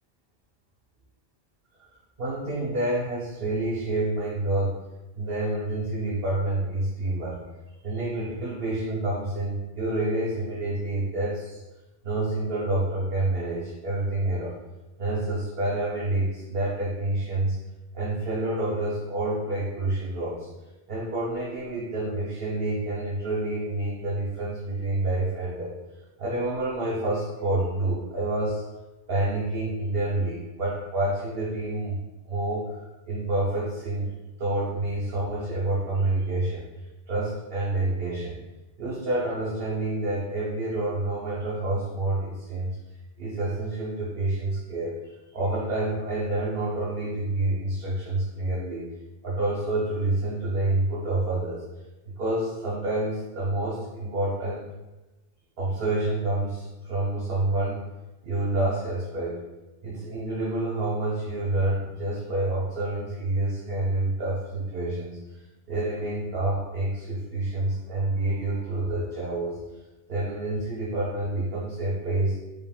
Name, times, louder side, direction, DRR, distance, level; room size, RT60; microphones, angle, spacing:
voice 1, 2.2-4.8 5.2-7.4 7.8-11.6 12.0-14.6 15.0-17.6 17.9-20.5 20.9-25.7 26.2-28.6 29.1-32.0 32.2-32.8 33.1-34.1 34.4-36.7 37.1-38.5 38.8-42.8 43.2-48.8 49.2-51.6 52.2-54.7 55.6-57.8 58.2-59.4 59.8-65.2 65.7-69.6 70.1-72.3, right 2 dB, 60° right, -6 dB, 0.9 m, -28 dB
4.8 x 3.5 x 2.3 m, 1.1 s
omnidirectional pair, 1.1 m